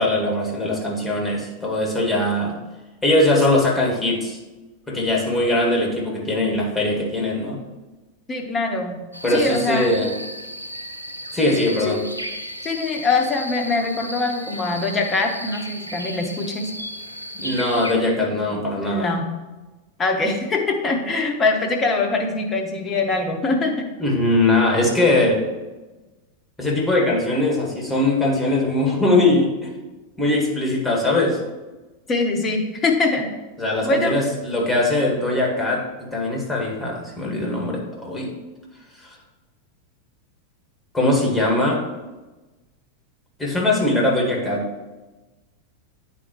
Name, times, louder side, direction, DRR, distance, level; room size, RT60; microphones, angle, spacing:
voice 1, 0.0-2.6 3.0-4.4 4.9-7.6 9.2-10.1 11.3-12.0 17.3-19.1 24.0-25.5 26.6-29.7 30.2-31.4 33.6-35.8 36.1-38.3 40.9-41.8 43.4-44.6, left 2 dB, 5° left, -1 dB, 1.8 m, -21 dB
voice 2, 8.3-9.0 9.3-10.0 11.6-12.0 12.6-16.7 18.3-18.5 18.8-19.3 20.0-23.9 32.1-33.3 33.8-34.2, left 3 dB, 20° left, 3 dB, 1.1 m, -23 dB
sound 1, 9.1-17.9, equal, 90° left, 0.5 m, -34 dB
9.6 x 4.3 x 3.0 m, 1.2 s
figure-of-eight pair, 90°, 0 cm